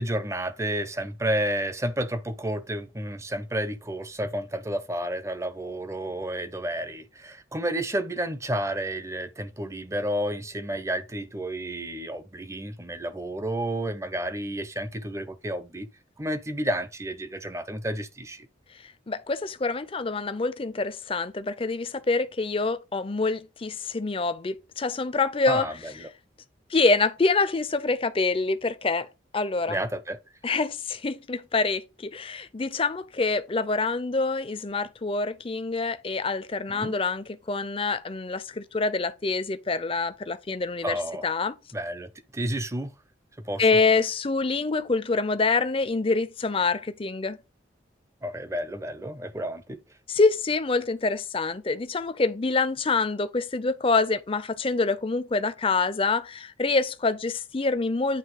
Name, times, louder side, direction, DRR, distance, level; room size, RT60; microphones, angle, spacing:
voice 1, 0.0-15.9 16.2-18.5 25.5-26.1 29.7-30.2 36.7-36.9 40.8-41.3 41.7-42.9 43.4-43.7 48.2-49.8, right 1 dB, 15° right, 0.6 m, -31 dB
voice 2, 19.1-25.7 26.7-29.1 29.3-29.8 30.4-41.5 43.6-47.4 50.1-58.2, left 3 dB, 30° left, 0.5 m, -26 dB
9.2 x 3.2 x 4.7 m
head